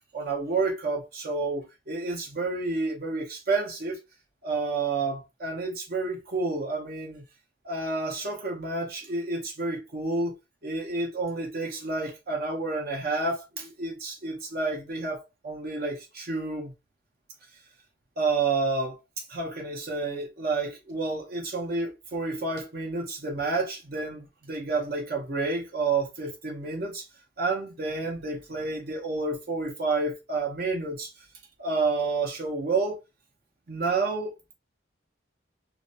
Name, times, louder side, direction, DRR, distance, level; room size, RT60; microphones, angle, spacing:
voice 1, 0.1-4.0 4.4-7.2 7.6-10.3 10.6-16.7 18.2-19.0 19.3-27.0 27.4-31.1 31.6-33.0 33.7-34.3, right 3 dB, 55° right, 0.6 m, -30 dB
2.4 x 2.1 x 2.6 m
head